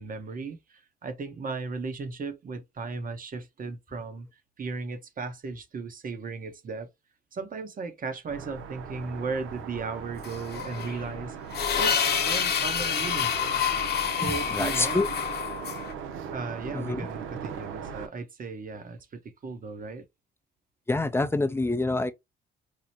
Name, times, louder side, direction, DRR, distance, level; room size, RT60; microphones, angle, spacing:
voice 1, 0.0-4.3 4.6-6.9 7.3-11.4 11.7-13.6 14.2-15.1 16.3-20.0, right 4 dB, 45° right, 1.0 m, -36 dB
sound 1, 8.3-18.1, right 7 dB, 85° right, 0.7 m, -39 dB
sound 2, 10.2-15.9, left 7 dB, 55° left, 1.0 m, -28 dB
voice 2, 14.2-15.1 16.7-17.1 20.9-22.1, left 2 dB, 10° left, 0.5 m, -27 dB
4.9 x 2.1 x 2.9 m
cardioid pair, 90°, 20 cm